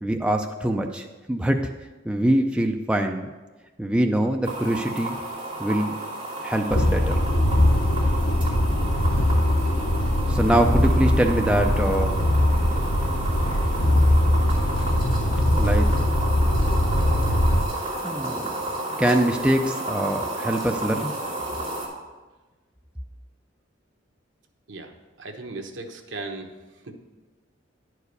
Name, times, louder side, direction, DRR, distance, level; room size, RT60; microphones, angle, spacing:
voice 1, 0.0-1.7 2.0-3.3 3.8-5.2 5.6-5.9 6.4-7.2 10.3-12.1 15.5-16.1 18.0-18.5 19.0-21.1, right 1 dB, 5° right, 3 dB, 0.4 m, -23 dB
sound 1, 4.4-21.9, right 2 dB, 25° right, 2.4 m, -32 dB
sound 2, 6.7-17.6, left 1 dB, 65° left, 0.8 m, -21 dB
voice 2, 25.2-26.5 26.8-26.9, right 2 dB, 70° right, 4 dB, 1.0 m, -36 dB
10.5 x 4.8 x 6.6 m, 1.2 s
head